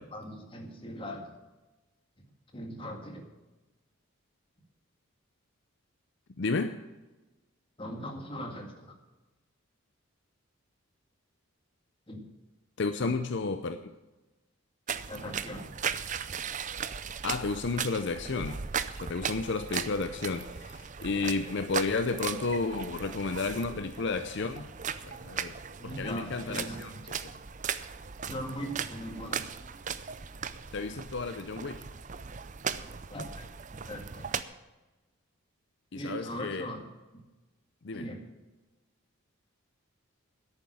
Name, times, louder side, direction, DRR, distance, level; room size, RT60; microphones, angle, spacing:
voice 1, 0.1-1.3 2.2-2.3 2.5-3.3 7.8-8.9 12.1-12.3 13.0-13.2 15.1-15.7 25.8-27.0 28.2-29.4 33.1-34.3 35.9-36.8 37.9-38.3, equal, 25° left, 2 dB, 1.8 m, -40 dB
voice 2, 6.4-6.8 12.8-13.9 17.2-18.6 19.0-24.7 25.0-25.5 26.0-26.9 27.2-27.3 30.7-31.8 35.9-36.7 37.8-38.0, left 3 dB, 55° left, 9 dB, 0.6 m, -32 dB
sound 1, 14.9-34.4, right 7 dB, 35° right, 0.5 m, -38 dB
11.0 x 8.9 x 7.7 m, 1.1 s
head